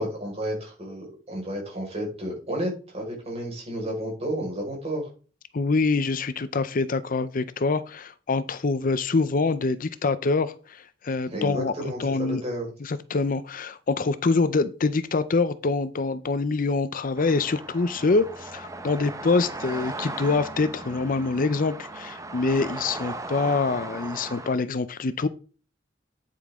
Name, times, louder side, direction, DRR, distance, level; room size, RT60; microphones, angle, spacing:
voice 1, 0.0-5.1 11.3-12.6, equal, 35° right, 4.8 m, -32 dB
voice 2, 5.5-12.4 12.8-25.3, left 3 dB, 45° left, 0.6 m, -25 dB
sound 1, 17.2-24.5, right 2 dB, 15° right, 0.9 m, -37 dB
9.2 x 8.7 x 3.6 m
head